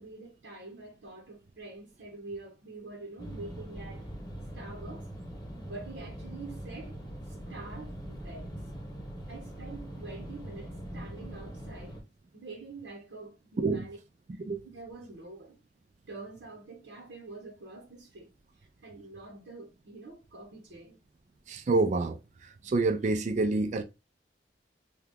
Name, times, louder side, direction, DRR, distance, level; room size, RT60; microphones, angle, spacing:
voice 1, 0.0-4.1 4.5-5.1 5.5-6.9 7.3-8.5 9.3-12.0 12.3-14.0 14.3-15.6 16.1-18.3 18.6-21.0, right 3 dB, 85° right, 0.8 m, -46 dB
sound 1, 3.2-12.0, equal, 20° left, 0.8 m, -42 dB
voice 2, 13.6-13.9 14.4-14.6 21.5-23.8, right 3 dB, 40° right, 0.3 m, -28 dB
2.8 x 2.3 x 3.4 m
head